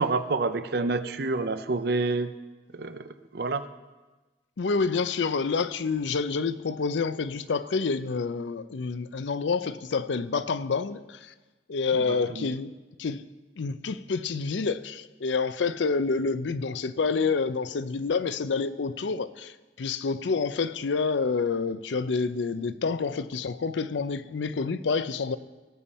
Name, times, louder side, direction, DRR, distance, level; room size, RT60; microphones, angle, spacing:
voice 1, 0.0-2.3 2.7-3.6 11.9-12.5, right 3 dB, 60° right, 0.6 m, -28 dB
voice 2, 4.6-11.3 11.7-12.7 13.0-13.2 13.6-25.4, left 4 dB, 85° left, 0.5 m, -28 dB
18.0 x 7.3 x 4.2 m
head